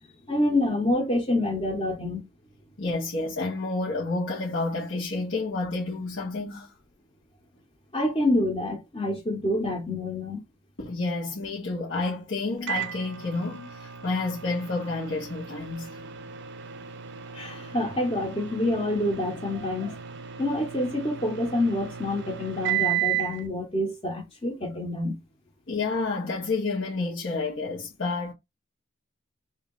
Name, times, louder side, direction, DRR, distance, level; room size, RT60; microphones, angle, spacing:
voice 1, 0.3-2.2 7.9-10.4 17.3-20.0 20.4-25.2, left 1 dB, 30° left, 1.0 m, -27 dB
voice 2, 2.8-6.7 10.8-15.9 25.7-28.3, left 3 dB, 75° left, 1.3 m, -30 dB
Microwave oven, 12.7-23.4, right 12 dB, 60° right, 0.4 m, -34 dB
3.2 x 2.8 x 3.9 m
head